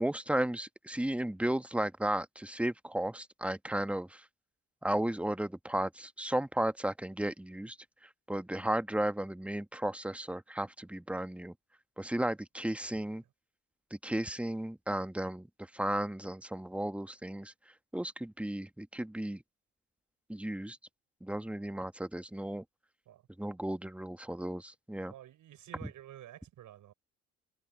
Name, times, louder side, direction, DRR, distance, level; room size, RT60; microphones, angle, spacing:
voice 1, 0.0-4.2 4.8-7.8 8.0-11.5 12.0-13.2 13.9-17.5 17.9-19.4 20.3-20.8 21.2-22.6 23.4-25.1 25.8-25.9, right 1 dB, 5° right, 1.4 m, -34 dB
voice 2, 25.1-26.9, right 12 dB, 65° right, 5.7 m, -51 dB
supercardioid pair, 70°, 33 cm